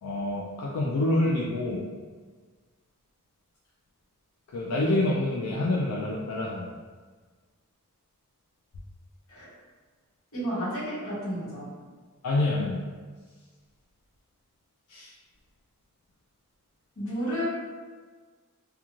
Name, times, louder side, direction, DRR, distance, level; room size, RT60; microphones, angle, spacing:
voice 1, 0.0-1.8 4.5-6.7 12.2-12.8 14.9-15.1, left 2 dB, 90° left, -5 dB, 0.4 m, -27 dB
voice 2, 10.3-11.7 17.0-17.4, equal, 65° left, -8 dB, 1.1 m, -31 dB
2.4 x 2.3 x 2.9 m, 1.5 s
head